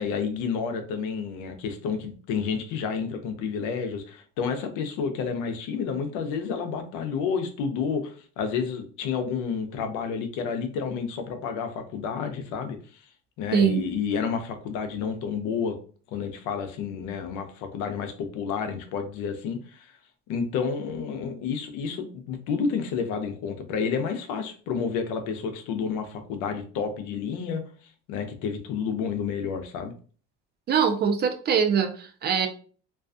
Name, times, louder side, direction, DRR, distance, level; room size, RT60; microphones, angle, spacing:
voice 1, 0.0-13.0 13.4-15.8 16.1-20.0 20.3-27.6 28.1-29.9, left 6 dB, 70° left, 7 dB, 0.6 m, -30 dB
voice 2, 13.5-13.8 30.7-32.5, right 7 dB, 35° right, 8 dB, 0.4 m, -23 dB
2.4 x 2.3 x 2.4 m, 0.41 s
supercardioid pair, 105°, 31 cm